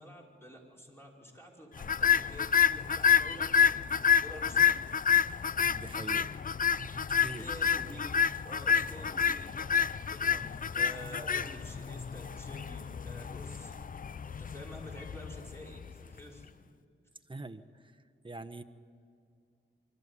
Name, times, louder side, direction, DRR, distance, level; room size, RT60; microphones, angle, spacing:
voice 1, 0.0-4.7 7.2-8.1 8.4-13.7 14.2-16.5, equal, 10° left, -2 dB, 5.0 m, -49 dB
sound 1, 1.8-16.1, left 7 dB, 40° left, 0.5 m, -29 dB
voice 2, 5.7-6.3 6.8-7.4 17.3-17.6 18.2-18.6, right 2 dB, 25° right, 9 dB, 1.2 m, -43 dB
24.5 x 14.0 x 8.2 m, 2.4 s
cardioid pair, 55°, 21 cm